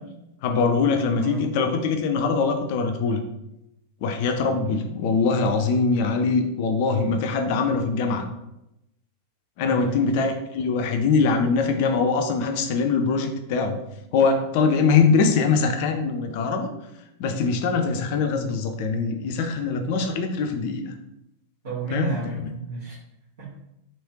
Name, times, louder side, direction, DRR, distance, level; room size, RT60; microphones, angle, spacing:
voice 1, 0.4-3.2 4.0-8.3 9.6-13.8 14.1-16.7 17.2-20.9 21.9-22.1 22.4-22.5, left 4 dB, 45° left, 5 dB, 0.4 m, -22 dB
voice 2, 9.6-10.0 21.6-22.9 23.4-23.7, right 3 dB, 60° right, -10 dB, 1.3 m, -32 dB
3.2 x 2.9 x 2.8 m, 0.87 s
figure-of-eight pair, 90°, 0 cm